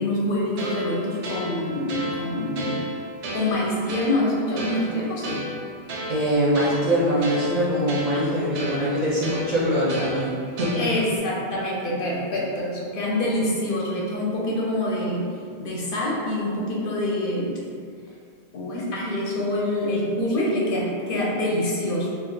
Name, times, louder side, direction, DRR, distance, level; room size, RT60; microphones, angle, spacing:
voice 1, 0.0-2.8 3.3-5.4 10.7-15.3 15.6-17.6 18.5-22.1, left 1 dB, 60° left, -5 dB, 0.7 m, -26 dB
sound 1, 0.6-11.2, right 1 dB, 85° right, 0.8 m, -34 dB
voice 2, 6.1-10.3 10.6-10.9, equal, 45° right, -8 dB, 0.6 m, -23 dB
2.4 x 2.3 x 3.7 m, 2.2 s
omnidirectional pair, 1.1 m